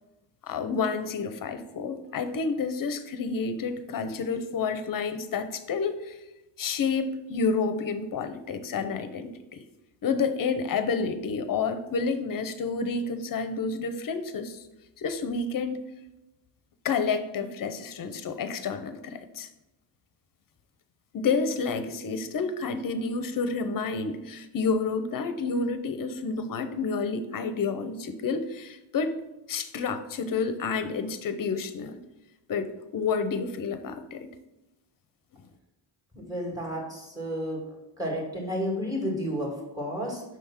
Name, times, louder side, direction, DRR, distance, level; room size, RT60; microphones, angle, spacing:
voice 1, 0.4-6.1 6.6-9.6 10.0-14.6 15.0-15.8 16.8-19.5 21.1-29.1 29.5-32.0 32.5-34.3, left 4 dB, 50° left, 10 dB, 0.6 m, -29 dB
voice 2, 36.1-37.6 38.0-40.2, equal, 10° right, -1 dB, 1.9 m, -31 dB
6.0 x 3.5 x 5.7 m, 0.96 s
cardioid pair, 105°, 42 cm